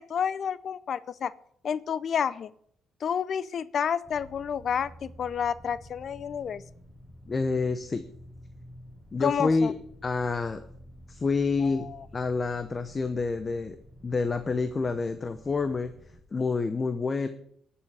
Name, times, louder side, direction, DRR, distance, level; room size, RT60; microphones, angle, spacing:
voice 1, 0.0-1.3 1.6-2.5 3.0-6.6 9.2-9.7 11.6-12.0, left 7 dB, 55° left, 18 dB, 0.5 m, -30 dB
sound 1, 4.0-16.2, equal, 5° right, 6.2 m, -50 dB
voice 2, 7.3-8.0 9.1-9.7 10.0-10.6 11.1-11.9 12.1-13.8 14.0-15.9 16.3-17.3, left 4 dB, 30° left, 10 dB, 0.8 m, -28 dB
19.5 x 7.1 x 4.9 m, 0.68 s
cardioid pair, 90°, 0 cm